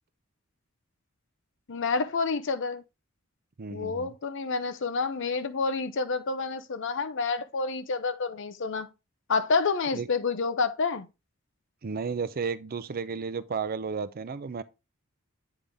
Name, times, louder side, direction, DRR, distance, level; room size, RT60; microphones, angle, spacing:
voice 1, 1.7-2.8 3.7-8.9 9.3-11.1, left 4 dB, 60° left, 0.7 m, -28 dB
voice 2, 3.6-4.1 9.9-10.1 11.8-14.6, right 5 dB, 45° right, 0.5 m, -33 dB
8.5 x 3.9 x 3.4 m
head